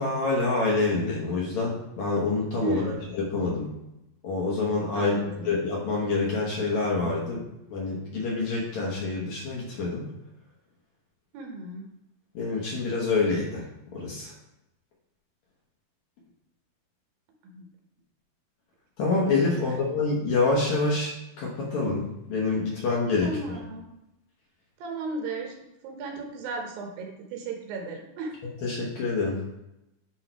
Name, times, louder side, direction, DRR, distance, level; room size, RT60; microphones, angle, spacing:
voice 1, 0.0-3.7 4.2-7.4 7.7-10.1 12.3-13.7 13.9-14.3 19.0-23.3 28.6-29.4, left 3 dB, 60° left, -3 dB, 2.1 m, -27 dB
voice 2, 2.6-3.1 4.9-5.6 11.3-11.8 17.4-17.7 19.6-19.8 23.2-23.9 24.8-25.6 25.8-28.3, right 3 dB, 75° right, 2 dB, 2.7 m, -35 dB
10.0 x 3.7 x 4.5 m, 0.88 s
omnidirectional pair, 4.5 m